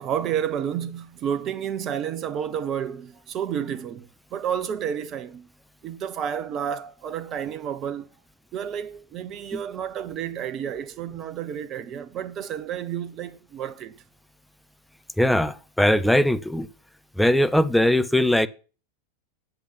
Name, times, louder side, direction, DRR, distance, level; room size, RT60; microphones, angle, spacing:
voice 1, 0.0-5.5 5.8-8.1 8.5-13.9, right 9 dB, 30° right, 1.0 m, -30 dB
voice 2, 15.2-16.7 17.2-18.5, left 1 dB, ahead, 0.7 m, -20 dB
8.4 x 8.0 x 5.8 m
figure-of-eight pair, 90°, 0 cm